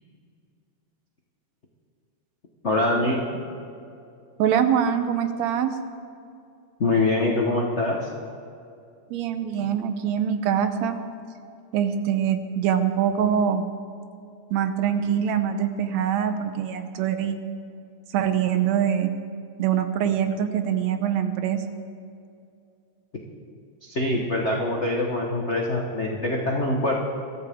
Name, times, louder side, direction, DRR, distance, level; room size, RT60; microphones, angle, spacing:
voice 1, 2.6-3.2 6.8-8.1 23.9-27.0, left 2 dB, 75° left, -1 dB, 0.6 m, -24 dB
voice 2, 4.4-5.8 9.1-11.0 11.7-13.7 14.5-17.4 18.1-19.1 19.6-21.6, right 8 dB, 75° right, 8 dB, 2.0 m, -24 dB
22.5 x 14.0 x 3.6 m, 2.5 s
omnidirectional pair, 3.4 m